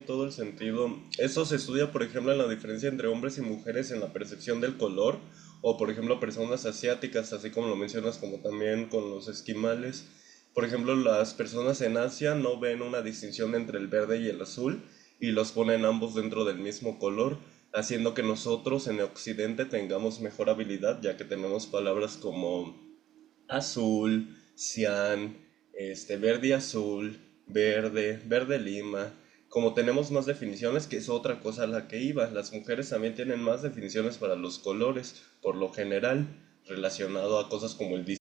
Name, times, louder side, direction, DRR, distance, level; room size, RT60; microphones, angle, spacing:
voice 1, 0.0-25.4 25.7-29.2 29.5-38.2, right 12 dB, 35° right, 3.5 m, -31 dB
hypercardioid pair, 120°, 0 cm